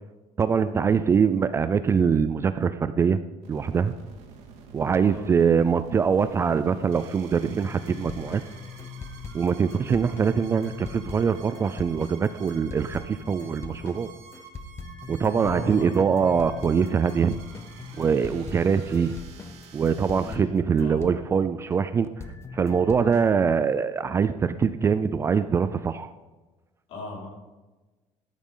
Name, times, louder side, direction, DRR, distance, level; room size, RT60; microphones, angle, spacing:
voice 1, 0.4-3.2 3.5-3.9 4.7-8.4 9.3-14.1 15.1-17.3 18.0-19.2 19.7-22.1 22.5-26.1, right 6 dB, 20° right, 12 dB, 0.3 m, -23 dB
sound 1, 3.4-20.4, right 6 dB, 65° right, 2.2 m, -49 dB
sound 2, 7.6-21.8 22.2-23.3, left 4 dB, 20° left, 0.7 m, -41 dB
voice 2, 15.3-15.9 20.1-20.5 20.8-21.2 23.2-23.3 26.9-27.3, left 1 dB, 60° left, -4 dB, 5.1 m, -37 dB
13.0 x 12.5 x 3.8 m, 1.2 s
cardioid pair, 165°, 12 cm